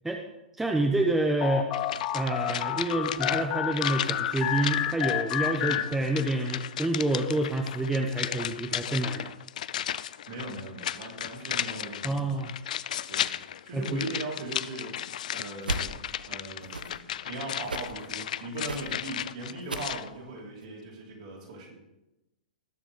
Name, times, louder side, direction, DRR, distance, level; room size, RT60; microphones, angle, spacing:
voice 1, 0.6-1.7 2.1-9.3 12.0-12.5 13.7-14.0, right 2 dB, 5° right, 3 dB, 0.9 m, -28 dB
sound 1, 1.4-6.5, left 11 dB, 35° left, 0.8 m, -31 dB
sound 2, 1.7-20.1 20.4-20.5, left 10 dB, 55° left, 0.4 m, -35 dB
voice 2, 10.3-12.3 13.1-13.3 13.6-15.0 15.3-15.9 16.3-21.8, right 2 dB, 55° right, -3 dB, 4.5 m, -39 dB
sound 3, 15.6-15.9 16.6-17.0 17.6-17.9 18.6-18.9 19.6-19.9 20.6-20.7, right 2 dB, 80° right, 1.0 m, -35 dB
19.5 x 7.3 x 3.8 m, 0.94 s
figure-of-eight pair, 110°, 5 cm